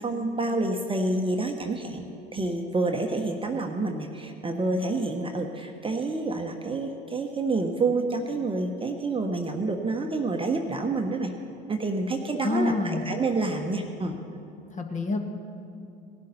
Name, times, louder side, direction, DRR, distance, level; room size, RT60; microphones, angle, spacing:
voice 1, 0.0-2.1 2.3-11.3 11.7-14.1, right 3 dB, 20° right, 3 dB, 1.1 m, -28 dB
voice 2, 12.4-13.0 14.8-15.2, left 3 dB, 25° left, 4 dB, 1.5 m, -27 dB
18.5 x 11.5 x 4.2 m, 2.7 s
hypercardioid pair, 70°, 30 cm